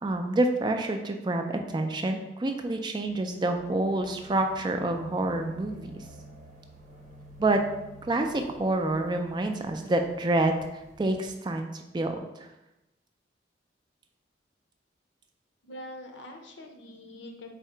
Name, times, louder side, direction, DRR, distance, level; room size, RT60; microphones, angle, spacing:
voice 1, 0.0-6.0 7.4-7.6 8.0-12.5, right 2 dB, 25° right, 5 dB, 0.3 m, -28 dB
sound 1, 3.0-11.3, right 1 dB, 40° right, 0.7 m, -50 dB
voice 2, 15.6-17.5, left 1 dB, 80° left, 4 dB, 0.7 m, -44 dB
4.1 x 2.8 x 4.5 m, 0.94 s
head